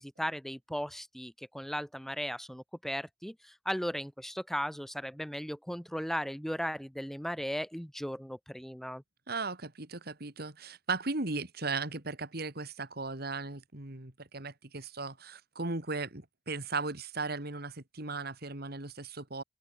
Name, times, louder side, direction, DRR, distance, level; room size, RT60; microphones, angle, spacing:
voice 1, 0.0-9.0, equal, ahead, 3.5 m, -37 dB
voice 2, 9.3-19.4, right 3 dB, 60° right, 2.8 m, -37 dB
head